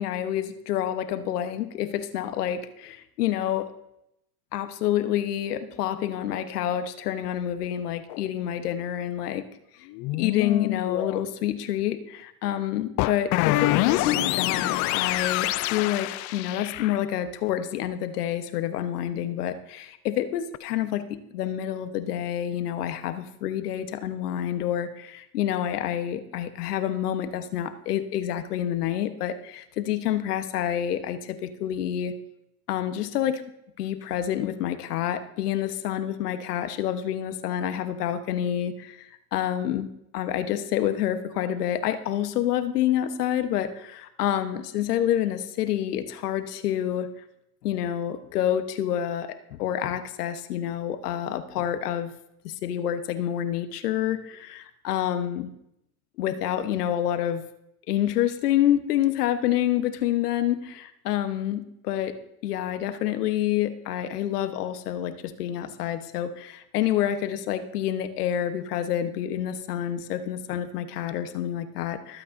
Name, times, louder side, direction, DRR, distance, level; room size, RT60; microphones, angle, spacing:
voice 1, 0.0-3.7 4.5-9.5 10.1-32.1 32.7-33.4 33.8-47.1 47.6-52.1 52.4-55.5 56.2-57.4 57.9-62.2 62.4-65.1 65.4-72.2, left 11 dB, 85° left, 10 dB, 1.2 m, -28 dB
sound 1, 8.1-8.2 9.9-11.2 13.0-17.0 20.5-20.6, left 18 dB, 40° left, 0.4 m, -26 dB
23.5 x 8.5 x 2.6 m, 0.80 s
supercardioid pair, 115°, 45 cm